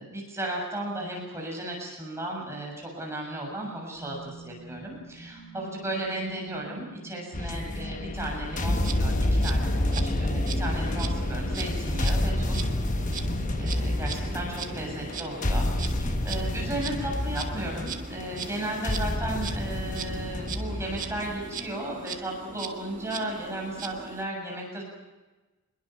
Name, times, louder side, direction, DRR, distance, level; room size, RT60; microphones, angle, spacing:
voice 1, 0.0-12.7 13.0-13.2 13.6-24.8, right 1 dB, 15° right, -1 dB, 7.3 m, -35 dB
sound 1, 3.9-15.9, right 2 dB, 80° left, 3.3 m, -47 dB
sound 2, 7.3-21.6, left 1 dB, 40° left, 1.0 m, -29 dB
Insect, 8.7-24.3, right 5 dB, 40° right, 1.7 m, -40 dB
26.5 x 22.0 x 5.9 m, 1.2 s
head